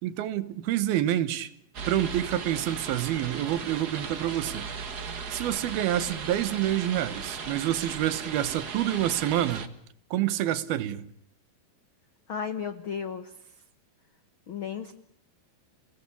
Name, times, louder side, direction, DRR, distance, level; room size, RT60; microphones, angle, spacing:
voice 1, 0.0-1.5 1.9-4.7 5.3-9.7 10.1-11.1, right 12 dB, 80° right, 3.1 m, -27 dB
sound 1, 1.7-9.7, right 5 dB, 45° right, 1.3 m, -37 dB
voice 2, 12.3-13.3 14.5-14.9, left 7 dB, 75° left, 1.2 m, -34 dB
29.5 x 19.0 x 8.5 m
omnidirectional pair, 4.3 m